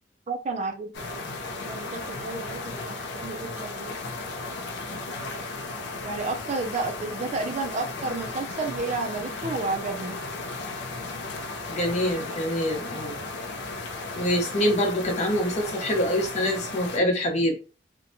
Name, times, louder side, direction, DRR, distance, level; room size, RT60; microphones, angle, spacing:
voice 1, 0.3-1.0 1.6-3.9 6.0-10.2, right 3 dB, 40° right, 0.4 m, -31 dB
sound 1, 0.9-17.0, left 3 dB, 70° left, 0.4 m, -35 dB
voice 2, 11.7-13.2 14.1-17.6, equal, 40° left, 0.8 m, -25 dB
2.7 x 2.1 x 2.6 m
head